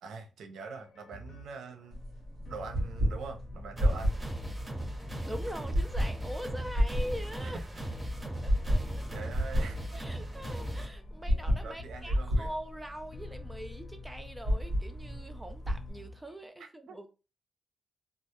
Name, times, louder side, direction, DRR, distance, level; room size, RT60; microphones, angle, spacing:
voice 1, 0.0-2.0 2.5-4.2 7.4-7.6 9.1-10.0 11.6-12.5 16.9-17.0, right 4 dB, 85° right, 0.4 m, -43 dB
sound 1, 0.6-16.5, left 1 dB, 60° left, 0.6 m, -49 dB
sound 2, 1.9-15.9, equal, 65° right, 0.9 m, -32 dB
sound 3, 3.8-10.9, right 1 dB, 35° right, 1.0 m, -38 dB
voice 2, 5.2-7.6 8.2-9.3 9.9-17.1, equal, 15° right, 0.4 m, -43 dB
2.3 x 2.1 x 2.8 m
cardioid pair, 60°, 0 cm